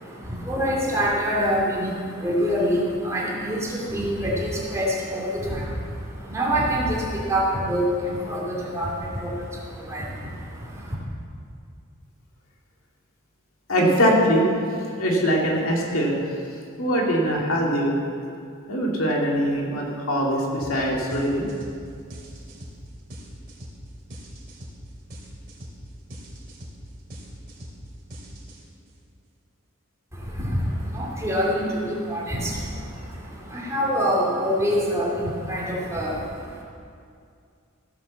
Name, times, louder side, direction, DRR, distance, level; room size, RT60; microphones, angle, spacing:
voice 1, 0.0-11.0 30.1-36.6, equal, 15° right, -5 dB, 2.6 m, -26 dB
voice 2, 13.7-14.5 15.0-16.1 16.8-18.0 18.7-21.5, equal, 70° left, -2 dB, 2.5 m, -22 dB
sound 1, 20.6-20.8 21.1-28.9, equal, 45° right, 2.5 m, -41 dB
15.5 x 7.4 x 7.2 m, 2.3 s
head